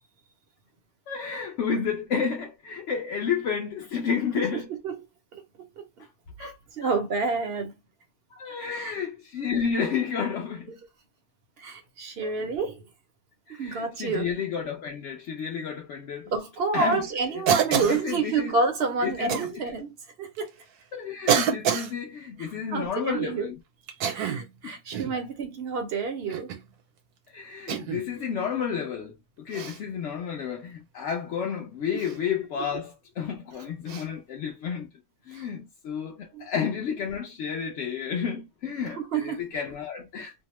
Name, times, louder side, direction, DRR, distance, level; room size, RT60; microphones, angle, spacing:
voice 1, 1.1-4.7 6.0-6.1 6.4-6.9 8.3-10.7 12.2-12.3 13.5-16.3 16.7-17.0 17.3-17.4 17.7-18.5 19.0-19.6 20.9-23.5 24.6-24.8 27.3-34.9 35.3-40.3, left 7 dB, 65° left, 0.8 m, -31 dB
voice 2, 6.4-7.7 8.7-8.9 11.6-12.8 13.5-14.3 16.3-20.5 22.4-23.5 24.1-26.6 31.9-32.0 35.3-35.5 36.3-36.5 39.0-39.5, right 4 dB, 55° right, 0.7 m, -29 dB
Cough, 17.5-18.0 19.3-19.5 20.4-20.5 21.3-21.9 23.9-24.5 24.9-25.2 26.3-26.7 27.7-28.1 29.5-29.8 32.0-32.2 33.9-34.1, right 8 dB, 80° right, 1.2 m, -26 dB
2.7 x 2.0 x 2.9 m
omnidirectional pair, 1.6 m